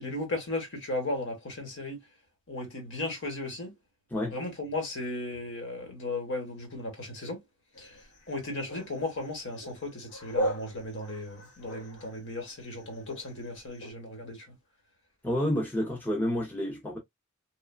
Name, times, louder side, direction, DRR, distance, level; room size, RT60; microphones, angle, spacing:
voice 1, 0.0-2.0 2.5-3.7 4.3-7.4 7.8-8.0 8.3-14.5, left 2 dB, 55° left, 1.1 m, -36 dB
sound 1, 7.7-13.9, equal, 85° left, 1.1 m, -39 dB
voice 2, 15.2-17.0, left 1 dB, 10° left, 0.6 m, -29 dB
3.1 x 2.1 x 2.2 m
head